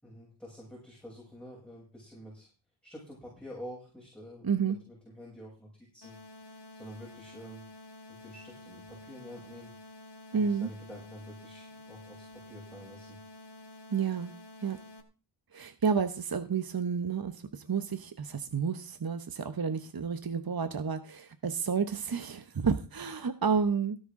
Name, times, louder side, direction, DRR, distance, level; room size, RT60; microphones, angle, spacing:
voice 1, 0.0-2.5 2.8-6.2 6.5-7.6 8.1-9.7 10.3-13.2, equal, ahead, -4 dB, 7.3 m, -48 dB
voice 2, 4.4-4.8 10.3-10.7 13.9-14.3 14.6-14.8 15.5-24.0, right 6 dB, 45° right, 9 dB, 1.1 m, -30 dB
sound 1, 6.0-15.0, left 2 dB, 55° left, 2.5 m, -50 dB
17.0 x 10.5 x 3.8 m, 0.34 s
wide cardioid pair, 80°, 49 cm